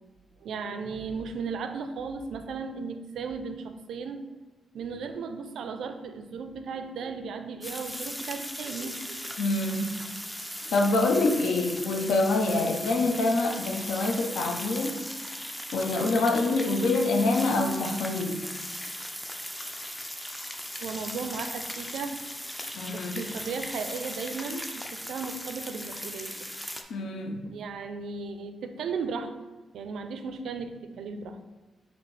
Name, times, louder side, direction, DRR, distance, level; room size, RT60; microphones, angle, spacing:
voice 1, 0.4-4.2 4.7-9.3 10.6-10.7 20.8-22.2 22.9-26.5 27.5-29.3 29.7-31.4, right 5 dB, 80° right, 8 dB, 0.4 m, -36 dB
sound 1, 7.6-26.8, equal, 5° left, 0.3 m, -38 dB
voice 2, 9.4-9.9 10.7-15.0 15.7-18.4 22.7-23.3 26.9-27.5, left 2 dB, 85° left, 3 dB, 0.5 m, -26 dB
5.9 x 2.7 x 3.1 m, 1.2 s
wide cardioid pair, 135°, 0 cm